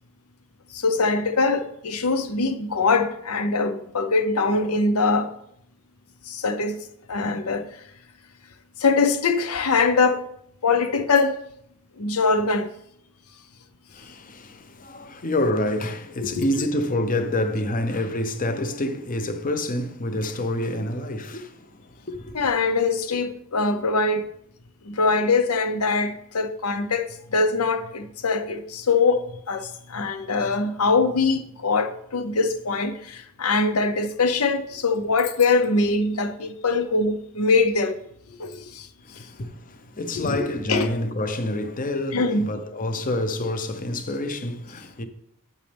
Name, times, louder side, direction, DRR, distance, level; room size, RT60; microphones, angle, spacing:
voice 1, 0.7-5.3 6.3-7.8 8.8-10.2 10.6-11.4 12.0-12.7 16.2-16.5 22.3-24.3 24.8-38.0 38.4-38.9 40.2-40.4 40.7-40.9 42.1-42.5, left 4 dB, 80° left, 0.8 m, -23 dB
voice 2, 13.9-22.5 39.1-45.0, left 1 dB, 40° left, 0.8 m, -28 dB
8.7 x 8.3 x 3.5 m
head